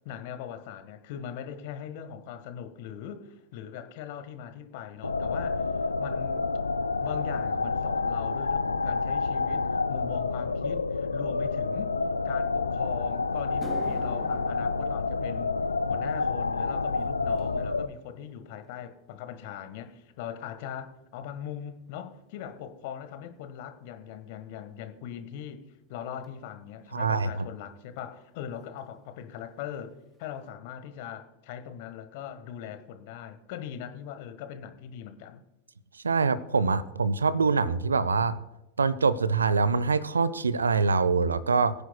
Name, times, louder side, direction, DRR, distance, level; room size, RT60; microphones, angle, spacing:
voice 1, 0.0-6.5 7.0-12.0 12.2-15.5 15.9-25.6 25.9-35.4, left 9 dB, 50° left, 10 dB, 1.3 m, -40 dB
sound 1, 5.0-17.9, left 4 dB, 80° left, 0.4 m, -29 dB
sound 2, 12.9-13.0 13.4-21.9 22.2-22.6 23.4-23.5 26.2-26.3 28.0-28.1 28.3-28.5 28.8-29.3 29.7-29.8 30.3-30.4, right 4 dB, 15° right, 0.9 m, -49 dB
voice 2, 26.9-27.3 36.0-38.4 38.8-41.7, right 4 dB, 75° right, 18 dB, 0.5 m, -24 dB
22.5 x 9.9 x 2.3 m, 0.96 s
figure-of-eight pair, 90°, 0 cm